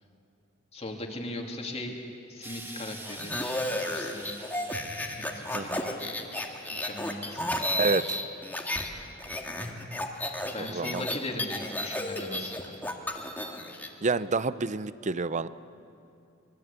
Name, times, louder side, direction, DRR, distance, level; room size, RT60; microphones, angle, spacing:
voice 1, 0.7-2.0 2.3-3.3 3.7-4.5 5.2-5.9 6.8-7.9 10.5-12.8, left 1 dB, 30° left, 1 dB, 2.6 m, -39 dB
Explosion, 2.4-7.7 8.6-8.7, right 2 dB, 10° right, 2.1 m, -47 dB
sound 1, 3.1-8.9 9.2-13.9, left 1 dB, 10° left, 1.9 m, -33 dB
voice 2, 7.8-8.2 10.6-11.1 14.0-15.5, right 4 dB, 35° right, 15 dB, 0.6 m, -29 dB
25.0 x 22.0 x 8.3 m, 2.7 s
head